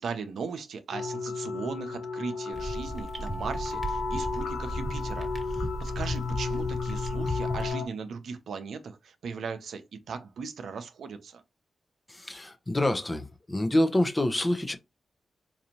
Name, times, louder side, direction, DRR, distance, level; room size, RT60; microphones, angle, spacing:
voice 1, 0.0-11.4, right 5 dB, 80° right, 0.6 m, -38 dB
sound 1, 0.9-7.9, left 4 dB, 80° left, 0.9 m, -33 dB
sound 2, 2.5-7.7, equal, 15° right, 1.2 m, -35 dB
voice 2, 12.1-14.8, left 1 dB, 25° left, 0.7 m, -27 dB
4.0 x 2.6 x 2.9 m
cardioid pair, 55°, 0 cm